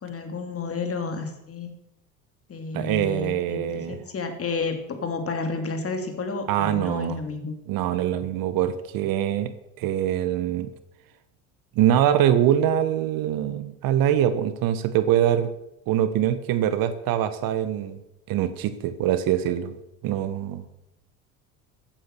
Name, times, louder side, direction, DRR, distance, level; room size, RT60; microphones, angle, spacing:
voice 1, 0.0-1.7 2.5-7.5, left 4 dB, 30° left, 6 dB, 3.0 m, -31 dB
voice 2, 2.7-4.0 6.5-7.2 7.7-9.5 9.8-10.7 11.7-15.5 15.9-18.0 18.3-19.7 20.0-20.6, right 11 dB, 50° right, 13 dB, 1.3 m, -23 dB
15.0 x 9.0 x 6.8 m, 0.88 s
hypercardioid pair, 65°, 43 cm